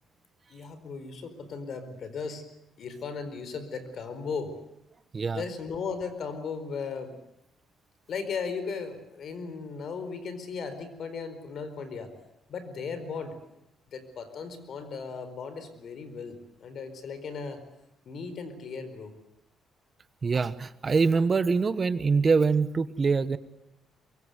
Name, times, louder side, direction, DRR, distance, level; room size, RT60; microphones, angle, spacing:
voice 1, 0.5-2.4 2.8-4.6 5.2-7.2 8.1-12.1 12.5-13.3 13.9-17.6 18.0-19.1, left 5 dB, 60° left, 11 dB, 4.6 m, -36 dB
voice 2, 20.2-23.4, right 4 dB, 35° right, 14 dB, 1.2 m, -24 dB
23.5 x 23.5 x 8.2 m, 0.86 s
cardioid pair, 90°, 0 cm